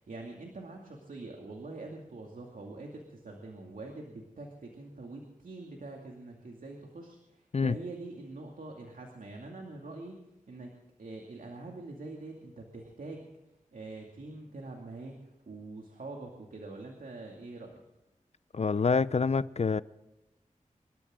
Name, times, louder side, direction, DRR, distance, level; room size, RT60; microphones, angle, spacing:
voice 1, 0.0-10.2 10.5-10.7 11.0-13.3 13.7-17.8, right 2 dB, 80° right, 2.4 m, -44 dB
voice 2, 18.5-19.8, left 4 dB, 50° left, 0.6 m, -26 dB
25.5 x 13.0 x 3.8 m
cardioid pair, 45°, 14 cm